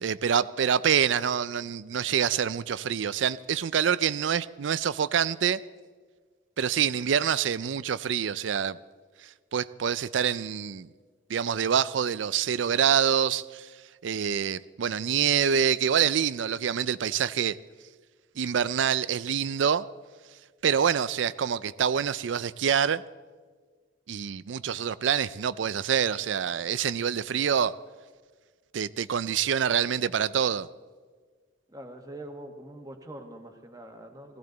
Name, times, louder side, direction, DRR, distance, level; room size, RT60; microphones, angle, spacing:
voice 1, 0.0-5.6 6.6-8.8 9.5-10.9 11.3-13.7 14.0-17.6 18.4-19.8 20.6-23.0 24.1-27.7 28.7-30.7, right 8 dB, 90° right, 0.4 m, -26 dB
voice 2, 31.7-34.4, right 1 dB, 20° right, 1.4 m, -43 dB
19.0 x 16.0 x 4.0 m
head